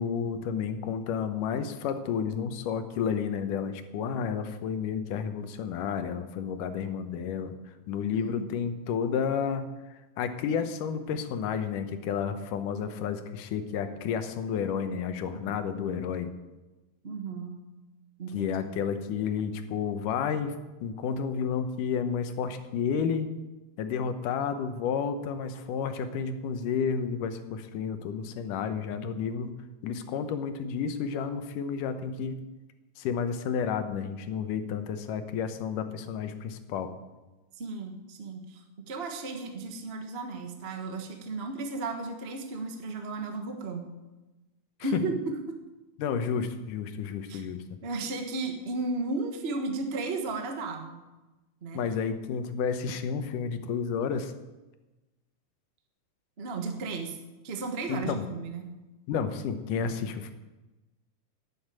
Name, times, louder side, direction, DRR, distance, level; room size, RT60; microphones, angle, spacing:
voice 1, 0.0-7.5 7.9-9.7 10.2-16.3 18.3-23.3 23.8-29.5 29.8-32.5 33.0-36.9 44.9-45.0 46.0-47.6 51.7-54.3 57.9-58.2 59.1-60.3, left 6 dB, 85° left, 9 dB, 2.5 m, -31 dB
voice 2, 8.1-8.5 15.3-15.6 17.0-17.6 18.2-18.5 37.6-43.9 44.8-45.6 47.3-47.5 47.8-51.0 51.6-51.8 56.4-57.2 57.4-58.7, right 3 dB, 40° right, 4 dB, 0.8 m, -34 dB
11.5 x 8.6 x 8.8 m, 1.1 s
omnidirectional pair, 3.7 m